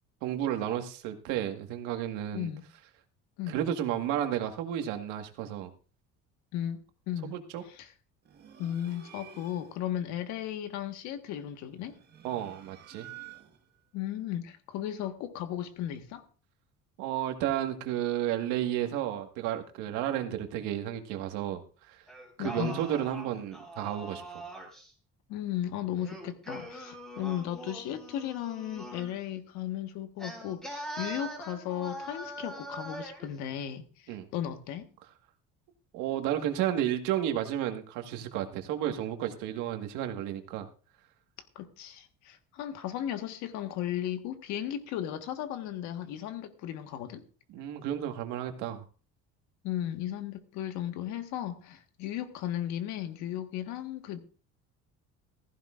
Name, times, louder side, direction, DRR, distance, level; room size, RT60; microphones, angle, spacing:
voice 1, 0.2-2.5 3.5-5.7 7.2-7.6 12.2-13.1 17.0-21.6 21.9-22.0 22.4-24.2 34.1-34.3 35.9-40.7 47.5-48.8, right 11 dB, 85° right, 1.7 m, -32 dB
voice 2, 2.3-2.6 3.4-3.6 6.5-6.8 7.1-7.4 7.7-7.9 8.6-12.0 13.9-16.2 22.4-22.9 25.3-34.9 41.5-47.2 49.6-54.2, left 11 dB, 70° left, 1.5 m, -35 dB
sound 1, 8.2-9.8 11.7-13.8, right 10 dB, 35° right, 1.5 m, -50 dB
Singing, 22.1-24.9 26.0-29.2 30.2-33.3, right 1 dB, ahead, 3.7 m, -42 dB
15.5 x 15.0 x 2.5 m
cardioid pair, 175°, 29 cm